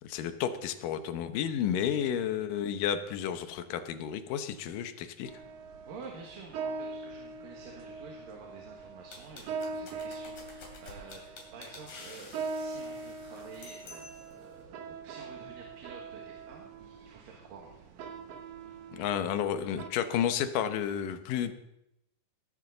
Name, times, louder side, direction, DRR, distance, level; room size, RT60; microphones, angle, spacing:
voice 1, 0.0-5.3 18.9-21.5, left 9 dB, 80° left, 10 dB, 2.5 m, -31 dB
sound 1, 5.2-19.9, right 4 dB, 70° right, 1.6 m, -42 dB
voice 2, 5.9-17.9, right 4 dB, 85° right, -1 dB, 3.4 m, -49 dB
sound 2, 9.1-14.4, left 3 dB, 60° left, 4.0 m, -50 dB
19.5 x 11.0 x 3.9 m, 0.86 s
omnidirectional pair, 3.8 m